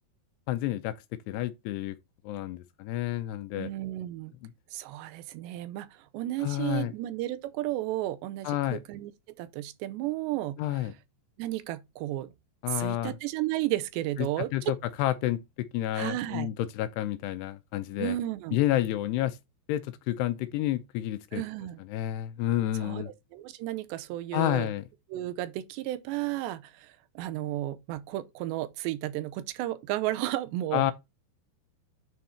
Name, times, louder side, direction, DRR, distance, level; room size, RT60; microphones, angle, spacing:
voice 1, 0.5-0.9 1.3-2.0 2.2-3.7 4.4-4.5 6.4-6.9 8.5-8.8 10.6-10.9 12.6-13.2 14.2-18.2 18.5-19.4 19.7-21.4 21.9-23.1 24.3-24.8 30.7-30.9, left 14 dB, 80° left, 2.6 m, -30 dB
voice 2, 3.5-4.3 4.7-10.9 11.4-12.3 12.7-14.7 15.9-16.5 18.0-18.6 21.3-21.8 22.8-23.0 23.3-24.7 25.1-30.9, right 15 dB, 85° right, 2.9 m, -33 dB
9.4 x 4.0 x 4.3 m
omnidirectional pair, 5.1 m